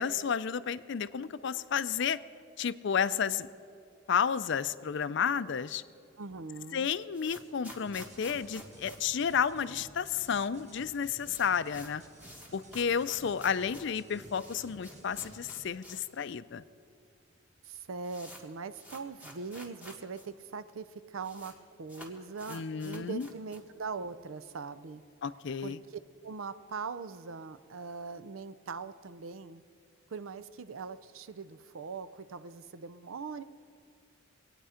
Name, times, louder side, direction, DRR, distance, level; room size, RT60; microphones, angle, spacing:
voice 1, 0.0-2.2 2.6-3.5 4.1-5.8 6.7-12.0 12.5-16.6 22.5-23.3 25.2-25.8, left 7 dB, 60° left, 15 dB, 0.4 m, -31 dB
voice 2, 6.2-6.9 17.6-25.0 25.6-29.6 30.1-33.4, right 4 dB, 80° right, 14 dB, 0.6 m, -41 dB
sound 1, 6.9-10.0 10.2-10.3 10.6-10.7 11.0-16.1 16.4-16.5 17.2-17.3 17.6-20.3 20.5-20.6 20.8-21.6 21.9-23.8, equal, 5° right, 1.6 m, -51 dB
sound 2, 7.9-15.7, right 1 dB, 35° right, 1.3 m, -54 dB
23.5 x 9.1 x 5.0 m, 2.4 s
head